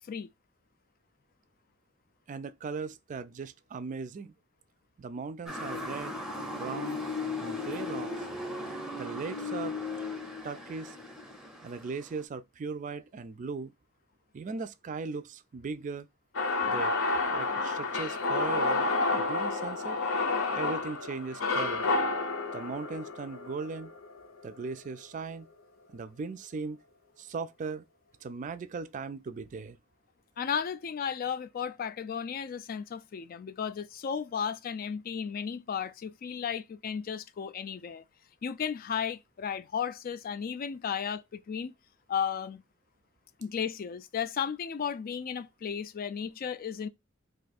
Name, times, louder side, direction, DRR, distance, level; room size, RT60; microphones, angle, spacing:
voice 1, 2.3-4.3 5.0-6.1 6.5-7.1 7.4-8.1 8.9-9.8 10.4-11.0 11.6-13.7 14.3-16.1 16.7-17.0 17.3-20.0 20.5-21.9 22.5-23.9 24.4-25.5 25.9-26.8 27.2-27.8 28.2-29.8, right 4 dB, 40° right, 0.3 m, -38 dB
Motor vehicle (road) / Siren, 5.5-12.2, left 3 dB, ahead, 0.6 m, -37 dB
sound 1, 16.3-24.5, left 3 dB, 85° left, 0.7 m, -30 dB
voice 2, 30.4-38.0 38.4-41.7 42.1-42.6 43.4-46.9, left 7 dB, 45° left, 0.3 m, -34 dB
2.6 x 2.4 x 4.0 m
head